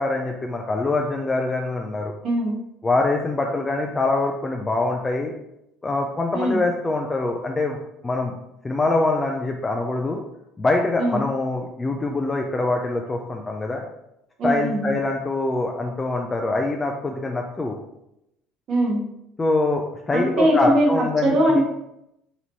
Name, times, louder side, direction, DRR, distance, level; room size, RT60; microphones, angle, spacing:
voice 1, 0.0-2.1 2.8-5.3 5.8-7.8 8.0-8.3 8.6-10.2 10.6-13.8 14.4-17.7 19.4-21.6, left 2 dB, 20° left, 2 dB, 0.5 m, -24 dB
voice 2, 2.2-2.5 6.3-6.6 11.0-11.2 14.4-15.0 18.7-19.0 20.1-21.6, right 1 dB, 55° right, -1 dB, 1.4 m, -21 dB
4.2 x 2.9 x 4.1 m, 0.84 s
supercardioid pair, 80°, 0 cm